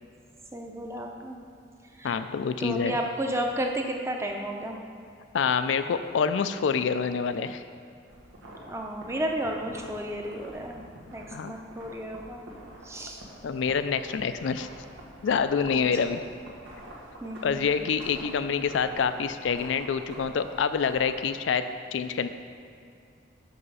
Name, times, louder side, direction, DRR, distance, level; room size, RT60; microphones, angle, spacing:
voice 1, 0.5-1.4 2.0-2.2 2.6-4.8 8.6-10.8 11.1-12.5 12.8-13.2 15.7-15.8 17.2-17.8, right 1 dB, 15° right, 2 dB, 0.6 m, -32 dB
voice 2, 2.0-3.0 5.3-7.6 11.3-11.5 13.4-14.7 15.2-16.2 17.4-21.6 21.9-22.3, left 6 dB, 75° left, 11 dB, 0.4 m, -26 dB
sound 1, 8.1-21.1, right 1 dB, 90° right, 1.5 m, -47 dB
6.6 x 5.5 x 5.5 m, 2.5 s
head